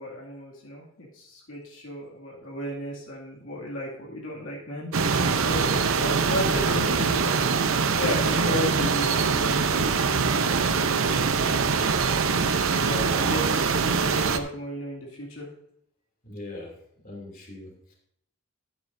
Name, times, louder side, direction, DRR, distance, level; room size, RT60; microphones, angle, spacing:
voice 1, 0.0-7.4 8.0-12.2 12.8-15.5, left 1 dB, 75° left, -3 dB, 2.4 m, -35 dB
sound 1, 4.9-14.4, right 5 dB, 80° right, 0.7 m, -23 dB
voice 2, 16.2-16.7 17.0-17.9, left 2 dB, 45° left, 0 dB, 2.9 m, -41 dB
13.0 x 9.7 x 2.7 m, 0.70 s
head